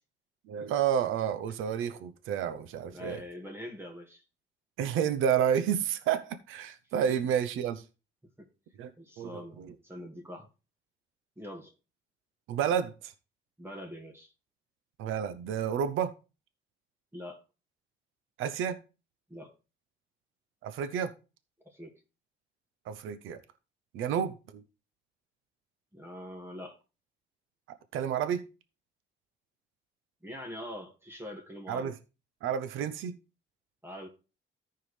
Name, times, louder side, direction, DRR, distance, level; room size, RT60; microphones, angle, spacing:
voice 1, 0.5-3.2 4.8-7.8 8.8-8.9 9.2-9.7 12.5-13.1 15.0-16.1 18.4-18.8 20.6-21.1 22.9-23.4 23.9-24.6 27.9-28.5 31.7-31.9 32.4-33.2, right 8 dB, 90° right, 0.8 m, -30 dB
voice 2, 2.9-4.2 8.4-8.5 9.0-10.5 11.4-11.7 13.6-14.3 17.1-17.4 19.3-19.5 21.7-22.0 25.9-26.8 30.2-31.9 33.8-34.1, left 1 dB, 10° right, 2.0 m, -43 dB
14.0 x 4.7 x 3.3 m
cardioid pair, 90°, 20 cm